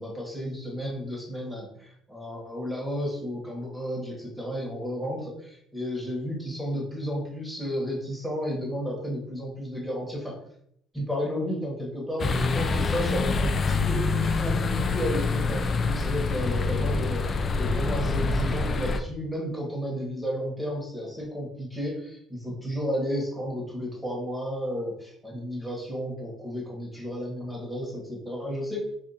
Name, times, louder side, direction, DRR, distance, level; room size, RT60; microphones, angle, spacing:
voice 1, 0.0-10.4 10.9-28.9, equal, ahead, -3 dB, 1.2 m, -32 dB
sound 1, 12.2-19.0, left 4 dB, 35° left, 0.3 m, -26 dB
2.5 x 2.5 x 4.0 m, 0.69 s
cardioid pair, 110°, 0 cm